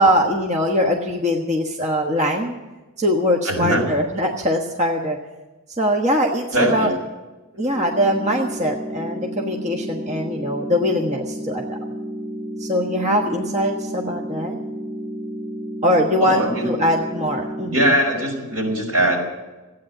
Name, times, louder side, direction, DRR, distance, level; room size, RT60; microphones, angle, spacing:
voice 1, 0.0-2.6 3.0-5.2 5.8-6.9 7.6-11.8 12.6-14.6 15.8-17.8, equal, 30° right, 1 dB, 1.3 m, -22 dB
voice 2, 3.4-3.9 6.5-6.9 16.2-16.7 17.7-19.2, right 1 dB, 80° right, 1 dB, 5.0 m, -20 dB
sound 1, 7.7-17.7, equal, 15° right, 3.9 m, -31 dB
15.0 x 9.4 x 8.9 m, 1.1 s
head